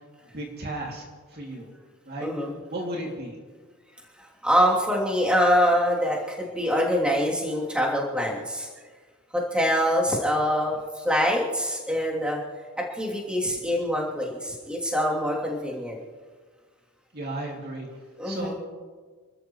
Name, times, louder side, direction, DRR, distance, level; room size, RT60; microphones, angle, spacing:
voice 1, 0.3-1.0 1.3-1.7 2.1-2.3 2.7-3.4 17.1-17.9 18.2-18.5, right 1 dB, 50° right, 0 dB, 2.6 m, -34 dB
voice 2, 2.2-2.6 4.4-8.7 9.3-10.8 11.0-12.4 12.8-16.0 18.2-18.5, equal, 5° right, -4 dB, 2.9 m, -24 dB
29.5 x 13.5 x 3.1 m, 1.5 s
head